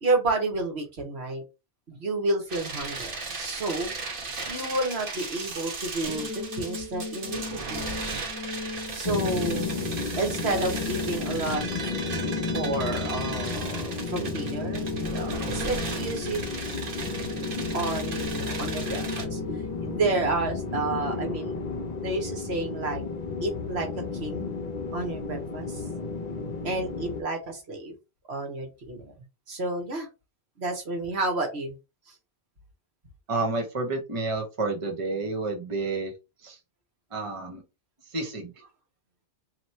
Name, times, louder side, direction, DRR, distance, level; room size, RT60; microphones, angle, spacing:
voice 1, 0.0-1.4 1.9-3.9 4.5-7.9 8.9-9.7 10.1-11.6 12.5-16.4 17.7-19.4 19.8-21.6 22.0-23.0 23.4-23.9 24.2-24.5 24.9-25.8 26.6-27.9 28.3-29.1 29.5-30.1 30.6-31.7 32.1-32.2, right 2 dB, 70° right, 2 dB, 1.5 m, -30 dB
sound 1, 2.5-19.2, right 3 dB, 55° right, 1.2 m, -36 dB
sound 2, 6.0-21.0, left 4 dB, 10° left, 1.5 m, -38 dB
sound 3, 9.0-27.2, left 4 dB, 45° left, 0.8 m, -33 dB
voice 2, 33.3-36.1 36.4-36.6 37.1-37.6 38.1-38.5, right 3 dB, 30° right, 2 dB, 0.9 m, -30 dB
3.0 x 2.9 x 4.1 m, 0.27 s
omnidirectional pair, 1.1 m